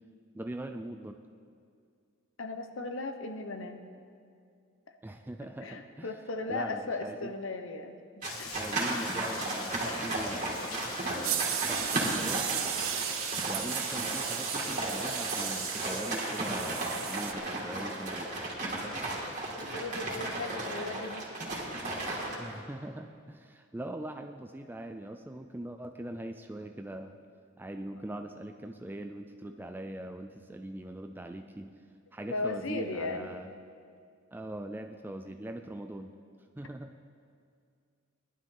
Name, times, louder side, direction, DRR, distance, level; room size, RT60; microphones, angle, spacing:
voice 1, 0.3-1.2 5.0-6.2 6.5-7.3 8.6-10.5 11.0-12.5 13.4-18.3 22.4-27.2 27.6-31.8 32.1-33.5 34.3-36.2 36.6-36.9, right 1 dB, 10° right, 5 dB, 0.3 m, -41 dB
voice 2, 2.4-3.8 5.6-8.0 8.4-8.5 19.6-21.3 32.3-33.3, left 2 dB, 65° left, 6 dB, 1.0 m, -36 dB
Rain, 8.2-16.0, left 5 dB, 90° left, 1.4 m, -43 dB
sound 1, 8.2-22.4, right 2 dB, 35° right, 2.5 m, -35 dB
sound 2, 11.2-17.3, right 11 dB, 80° right, 0.7 m, -35 dB
19.0 x 11.5 x 3.8 m, 2.3 s
head